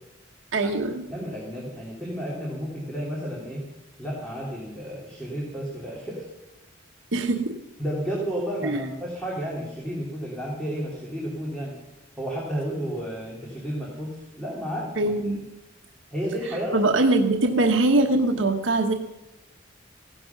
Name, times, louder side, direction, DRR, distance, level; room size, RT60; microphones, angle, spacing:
voice 1, 0.5-1.0 7.1-7.6 8.6-8.9 15.0-15.4 16.7-18.9, right 2 dB, 70° right, 3 dB, 1.1 m, -22 dB
voice 2, 1.1-3.7 4.0-6.3 7.8-11.7 12.2-15.1 16.1-16.8, equal, 5° left, -4 dB, 3.0 m, -32 dB
16.0 x 11.5 x 5.9 m, 1.0 s
head